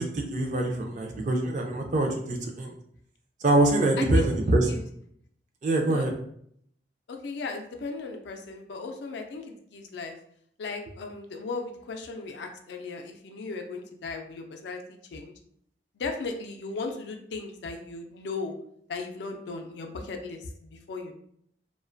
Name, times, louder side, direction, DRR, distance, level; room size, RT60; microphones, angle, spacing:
voice 1, 0.0-2.7 3.4-4.7 5.6-6.1, right 2 dB, 45° right, 3 dB, 0.4 m, -24 dB
voice 2, 4.0-4.3 4.7-4.8 5.8-6.1 7.1-10.2 10.6-15.3 16.0-18.6 18.9-20.4 20.7-21.1, left 4 dB, 75° left, 4 dB, 0.4 m, -36 dB
2.4 x 2.2 x 2.5 m, 0.68 s
head